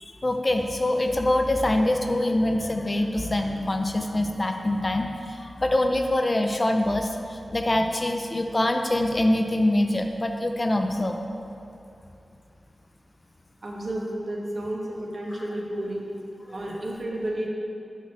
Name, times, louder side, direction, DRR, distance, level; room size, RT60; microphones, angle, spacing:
voice 1, 0.0-11.2, left 1 dB, 35° left, 4 dB, 0.5 m, -24 dB
voice 2, 13.6-16.0 16.5-17.5, right 1 dB, 55° right, -2 dB, 1.3 m, -31 dB
6.8 x 4.6 x 6.2 m, 2.6 s
wide cardioid pair, 65°, 0 cm